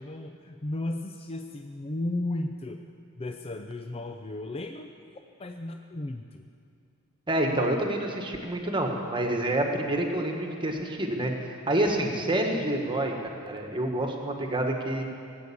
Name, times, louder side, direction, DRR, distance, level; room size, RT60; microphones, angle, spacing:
voice 1, 0.0-2.8 3.2-4.9 5.4-6.4, left 2 dB, 25° left, 5 dB, 0.5 m, -34 dB
voice 2, 7.3-11.3 11.7-13.1 13.4-15.0, right 1 dB, 20° right, 2 dB, 1.5 m, -27 dB
18.5 x 8.0 x 8.6 m, 2.4 s
head